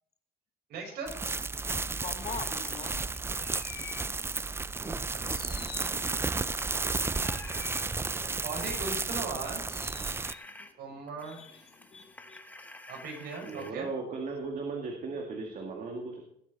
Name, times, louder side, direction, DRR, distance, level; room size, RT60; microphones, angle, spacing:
voice 1, 0.7-1.1 4.8-5.9 8.4-9.6 10.8-11.4 12.9-13.9, right 4 dB, 70° right, 1 dB, 5.3 m, -39 dB
sound 1, 1.1-10.3, right 3 dB, 15° right, 0.4 m, -33 dB
voice 2, 2.0-3.0 3.7-3.8 10.2-10.7 11.2-12.8 15.3-15.4, left 5 dB, 40° left, 8 dB, 1.5 m, -45 dB
sound 2, 2.2-4.0 4.5-4.8 5.3-6.4 7.2-8.1 9.4-10.4 11.5-12.0, left 10 dB, 80° left, 2.3 m, -49 dB
sound 3, 7.0-7.7 8.6-8.8 9.9-10.7 11.1-13.7, left 2 dB, 10° left, 1.3 m, -50 dB
voice 3, 13.4-16.2, right 4 dB, 50° right, 2 dB, 2.1 m, -36 dB
19.0 x 8.2 x 4.1 m, 0.71 s
cardioid pair, 110°, 17 cm